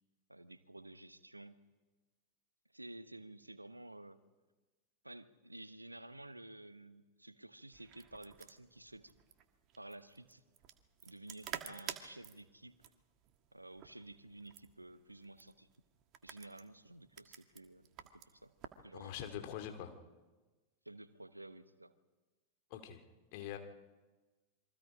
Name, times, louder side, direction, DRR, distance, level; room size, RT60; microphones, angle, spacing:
voice 1, 0.3-1.6 2.7-4.2 5.0-9.1 9.8-10.4 11.0-12.8 13.5-15.7 16.2-18.5 18.8-19.1 20.8-21.9, right 2 dB, 85° right, 14 dB, 1.1 m, -52 dB
sound 1, 7.7-18.9, right 10 dB, 40° right, 1.8 m, -51 dB
voice 2, 18.9-19.9 22.7-23.0 23.3-23.6, left 10 dB, 45° left, 6 dB, 2.6 m, -44 dB
27.5 x 24.0 x 5.1 m, 1.2 s
figure-of-eight pair, 90°, 0 cm